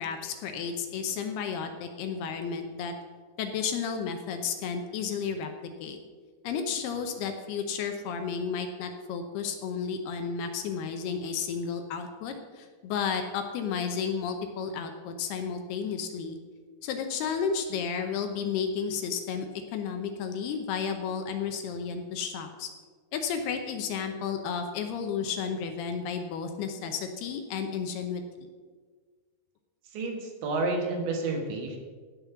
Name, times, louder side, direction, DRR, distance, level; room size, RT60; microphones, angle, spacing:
voice 1, 0.0-2.9 3.4-5.5 5.8-6.0 6.4-16.4 16.8-22.7 23.1-28.2, left 6 dB, 75° left, 6 dB, 2.6 m, -32 dB
voice 2, 29.9-31.8, right 3 dB, 85° right, 2 dB, 4.1 m, -30 dB
16.0 x 5.5 x 6.9 m, 1.5 s
omnidirectional pair, 5.1 m